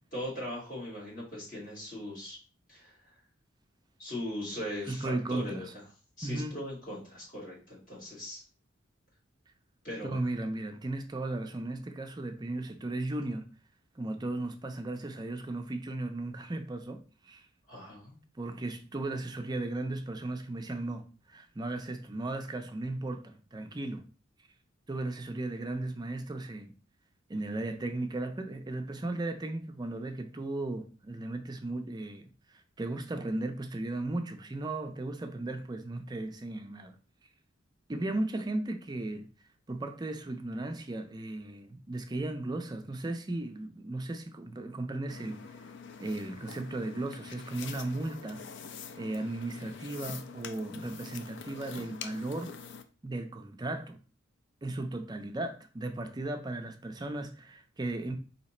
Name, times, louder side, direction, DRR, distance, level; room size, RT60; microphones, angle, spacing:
voice 1, 0.1-2.4 2.7-3.1 4.0-5.8 6.2-8.4 9.8-10.2 17.7-18.1, left 1 dB, 45° left, 2.3 m, -39 dB
voice 2, 4.9-5.7 6.2-6.6 10.0-13.5 14.0-17.5 18.4-24.1 24.9-26.7 27.3-37.0 37.9-39.3 39.7-45.4 46.0-48.4 49.0-52.5 53.0-54.0 54.6-58.2, right 2 dB, 20° right, 0.4 m, -36 dB
sound 1, 45.1-52.8, left 6 dB, 65° left, 0.5 m, -45 dB
4.1 x 2.8 x 4.2 m
head